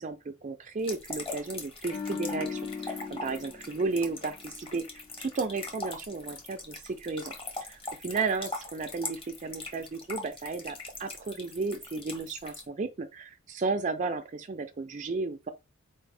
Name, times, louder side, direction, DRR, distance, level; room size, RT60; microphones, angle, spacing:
voice 1, 0.0-4.9 5.2-7.3 7.6-15.5, right 4 dB, 35° right, 0.4 m, -33 dB
sound 1, 0.8-12.6, left 2 dB, 25° left, 1.2 m, -41 dB
sound 2, 1.8-5.1 5.4-5.7, left 5 dB, 50° left, 1.7 m, -39 dB
4.3 x 3.5 x 3.3 m
head